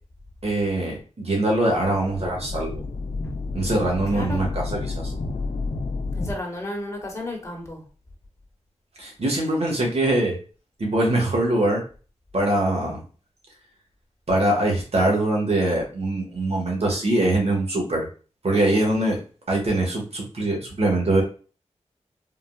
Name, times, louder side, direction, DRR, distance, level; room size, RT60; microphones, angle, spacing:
voice 1, 0.4-2.8 3.5-5.1 9.0-10.4 10.8-11.8 12.3-13.0 14.3-18.1 18.4-19.2 19.5-21.2, right 1 dB, 60° right, -1 dB, 1.3 m, -23 dB
sound 1, 1.7-6.3, left 3 dB, 65° left, 0.6 m, -30 dB
voice 2, 4.1-4.5 6.2-7.8, left 1 dB, 25° left, -1 dB, 1.2 m, -32 dB
3.7 x 2.4 x 2.2 m, 0.37 s
cardioid pair, 55°, 12 cm